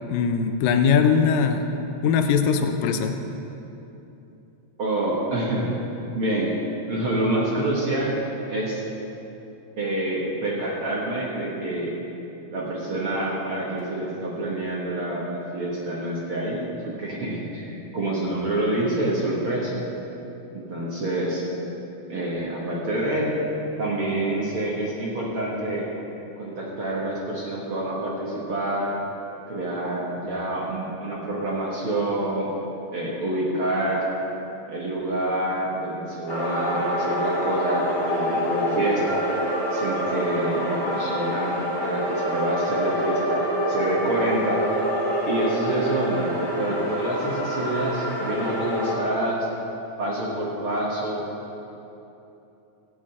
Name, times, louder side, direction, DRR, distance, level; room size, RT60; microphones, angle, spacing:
voice 1, 0.1-1.7 2.0-3.2, left 6 dB, 85° left, 6 dB, 2.3 m, -21 dB
voice 2, 4.8-5.7 6.1-6.6 6.9-8.8 9.8-12.0 12.5-19.8 20.5-21.4 22.1-23.3 23.8-25.9 26.4-28.9 29.5-32.5 32.9-34.0 34.7-39.2 39.7-43.4 43.7-44.6 45.3-49.5 50.0-51.2, right 1 dB, 50° right, -5 dB, 1.8 m, -27 dB
sound 1, 36.3-49.0, equal, 20° left, 2.2 m, -26 dB
15.0 x 5.0 x 8.7 m, 2.9 s
omnidirectional pair, 3.9 m